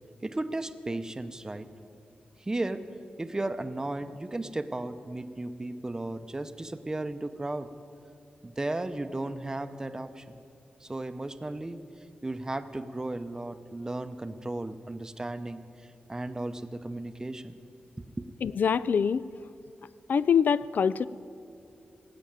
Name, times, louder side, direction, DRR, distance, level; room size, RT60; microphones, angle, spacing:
voice 1, 0.2-1.7 2.4-2.8 3.2-7.7 8.4-10.4 10.8-11.8 12.2-17.6 18.2-18.3, right 2 dB, 20° right, 10 dB, 0.7 m, -35 dB
voice 2, 18.4-19.3 20.1-21.1, left 7 dB, 65° left, 18 dB, 0.3 m, -24 dB
18.5 x 9.0 x 7.4 m, 2.6 s
wide cardioid pair, 105°, 3 cm